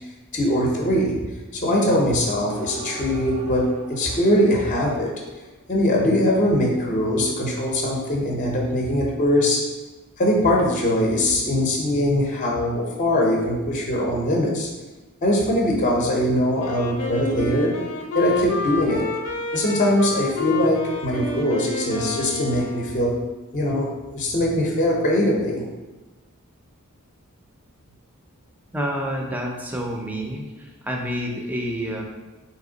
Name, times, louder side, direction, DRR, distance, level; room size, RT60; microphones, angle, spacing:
voice 1, 0.3-1.1 1.5-5.1 5.7-9.6 10.2-14.7 15.2-17.7 18.1-19.0 19.5-23.1 23.5-25.7, left 1 dB, 35° left, -1 dB, 0.6 m, -21 dB
sound 1, 2.5-5.9, right 1 dB, 60° right, 0.5 m, -41 dB
Wind instrument woodwind instrument, 16.6-23.3, left 2 dB, 75° left, 0.6 m, -29 dB
voice 2, 28.7-32.0, equal, 10° right, 0 dB, 0.5 m, -28 dB
3.5 x 2.9 x 3.8 m, 1.1 s
head